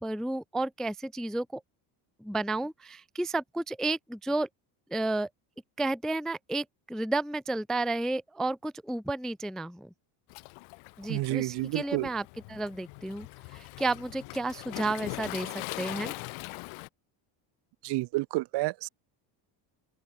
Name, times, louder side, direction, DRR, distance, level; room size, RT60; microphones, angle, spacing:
voice 1, 0.0-1.6 2.2-4.5 4.9-5.3 5.8-9.9 11.0-13.3 13.5-16.1, right 2 dB, ahead, 0.4 m, -32 dB
Waves surf, 10.3-16.9, left 28 dB, 75° left, 0.7 m, -41 dB
voice 2, 11.1-12.1 17.8-18.9, right 20 dB, 55° right, 0.7 m, -30 dB
open air
cardioid pair, 145°, 49 cm